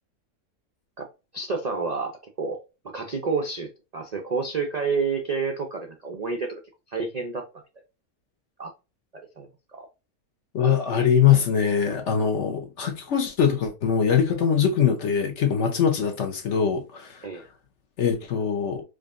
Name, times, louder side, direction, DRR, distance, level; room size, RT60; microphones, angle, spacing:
voice 1, 1.3-2.6 2.9-6.5 6.9-7.4 8.6-8.7 9.1-9.9 17.2-17.4, right 4 dB, 55° right, 0.4 m, -29 dB
voice 2, 10.5-17.2 18.0-18.8, left 7 dB, 55° left, 1.0 m, -22 dB
5.0 x 2.7 x 2.5 m
omnidirectional pair, 1.7 m